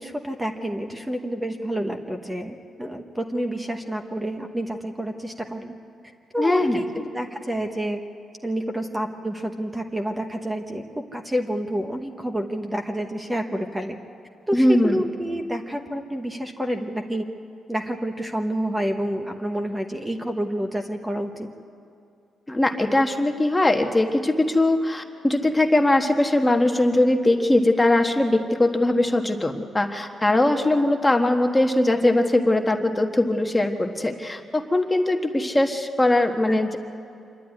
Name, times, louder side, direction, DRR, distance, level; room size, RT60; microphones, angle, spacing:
voice 1, 0.0-5.8 6.3-8.0 8.4-10.8 11.1-14.0 14.5-17.2 17.7-21.5 36.5-36.6, equal, 10° right, 4 dB, 1.2 m, -28 dB
voice 2, 6.4-6.8 14.5-15.0 22.5-36.8, left 1 dB, 10° left, 4 dB, 1.3 m, -21 dB
26.5 x 12.0 x 9.8 m, 2.5 s
cardioid pair, 125°, 0 cm